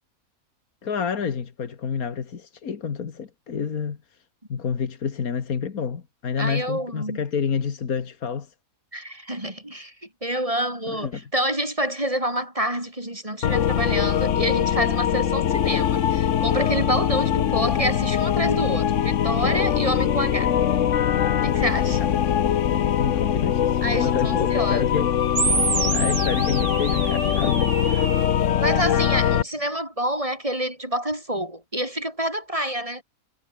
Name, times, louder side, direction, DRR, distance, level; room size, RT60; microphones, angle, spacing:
voice 1, 0.8-4.0 4.5-8.5 10.9-11.2 21.5-22.1 23.0-25.1 25.9-28.1, left 6 dB, 90° left, 2.2 m, -29 dB
voice 2, 6.4-7.2 8.9-9.9 10.2-20.5 21.4-22.0 23.8-24.9 28.6-33.0, right 1 dB, 25° right, 5.5 m, -27 dB
sound 1, 13.4-29.4, left 9 dB, 65° left, 1.2 m, -22 dB
sound 2, 25.4-28.4, right 4 dB, 65° right, 2.8 m, -27 dB
omnidirectional pair, 1.5 m